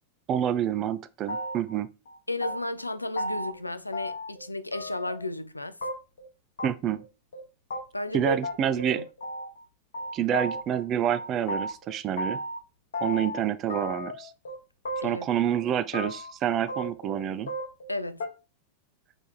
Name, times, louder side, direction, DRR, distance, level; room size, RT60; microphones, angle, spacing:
voice 1, 0.3-1.9 6.6-7.0 8.1-9.0 10.1-12.4 13.0-14.3 15.0-17.5, right 10 dB, 30° right, 0.4 m, -28 dB
sound 1, 1.3-1.8 2.1-2.9 3.2-3.6 3.9-4.5 4.7-5.3 5.8-6.3 6.6-6.7 7.0-7.1 7.3-7.4 7.7-7.8 8.1-8.2 8.4-9.6 9.9-10.8 11.1-12.6 12.9-13.4 13.7-14.6 14.8-15.3 15.6-16.3 16.7-17.9 18.2-18.3, left 1 dB, 65° left, 1.0 m, -34 dB
voice 2, 2.3-5.8 7.9-8.4 8.9-9.1 15.0-15.3 17.9-18.2, left 1 dB, 85° left, 0.3 m, -33 dB
3.3 x 3.1 x 4.2 m
figure-of-eight pair, 90°, 0 cm